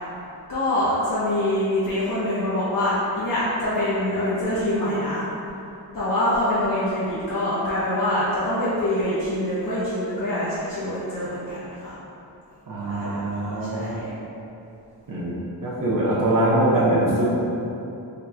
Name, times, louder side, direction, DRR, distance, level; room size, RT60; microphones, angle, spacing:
voice 1, 0.5-5.2 5.9-12.0 12.9-14.2, left 1 dB, 50° left, -11 dB, 1.0 m, -25 dB
voice 2, 12.7-13.8 15.1-15.4 15.6-17.2, right 1 dB, 50° right, -8 dB, 0.9 m, -22 dB
3.8 x 2.4 x 4.4 m, 2.8 s
wide cardioid pair, 90°, 42 cm